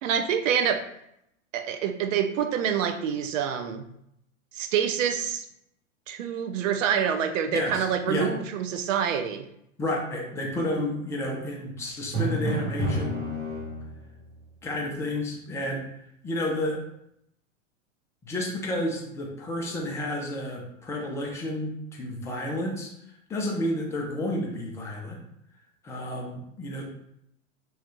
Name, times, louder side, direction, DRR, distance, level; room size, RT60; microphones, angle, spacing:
voice 1, 0.0-0.8 1.5-3.9 4.5-5.5 6.1-9.5, right 8 dB, 70° right, 7 dB, 0.5 m, -26 dB
voice 2, 7.5-8.3 9.8-13.2 14.6-15.8 16.2-16.8 18.2-22.9 23.3-25.2 25.8-26.8, left 1 dB, 10° left, -1 dB, 0.3 m, -31 dB
Drum, 12.1-14.2, right 1 dB, 30° right, 1.4 m, -29 dB
3.1 x 2.3 x 3.0 m, 0.76 s
hypercardioid pair, 110°, 39 cm